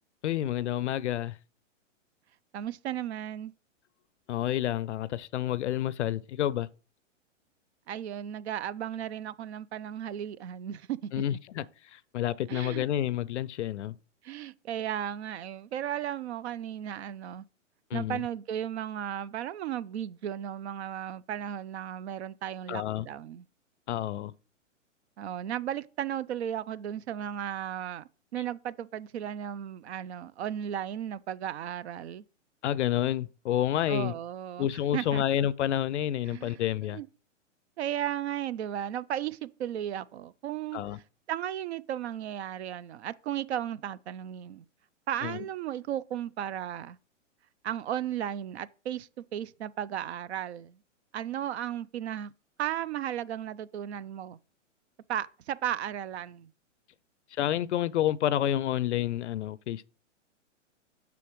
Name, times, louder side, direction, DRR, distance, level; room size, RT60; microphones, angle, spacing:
voice 1, 0.2-1.3 4.3-6.7 11.1-11.6 12.1-13.9 17.9-18.2 22.7-23.1 23.9-24.3 32.6-34.1 34.6-37.0 40.7-41.0 45.2-45.4 57.4-59.9, left 12 dB, 65° left, 0.5 m, -29 dB
voice 2, 2.5-3.5 7.9-11.4 12.5-12.9 14.2-17.4 17.9-23.5 25.2-32.2 33.9-35.2 36.2-37.1 37.8-41.0 41.3-44.6 45.1-47.0 47.6-50.8 51.1-52.3 52.6-54.4 55.1-56.5, right 10 dB, 60° right, 0.5 m, -35 dB
7.0 x 6.0 x 3.1 m
hypercardioid pair, 120°, 37 cm